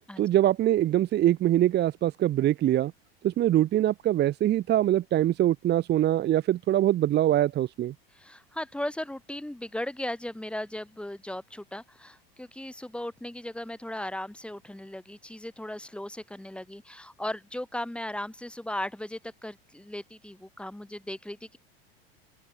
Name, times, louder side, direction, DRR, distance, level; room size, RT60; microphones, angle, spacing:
voice 1, 0.2-2.9 3.2-7.9, right 13 dB, 35° right, 0.9 m, -23 dB
voice 2, 8.1-21.6, left 1 dB, 5° left, 5.1 m, -37 dB
open air
hypercardioid pair, 100°, 30 cm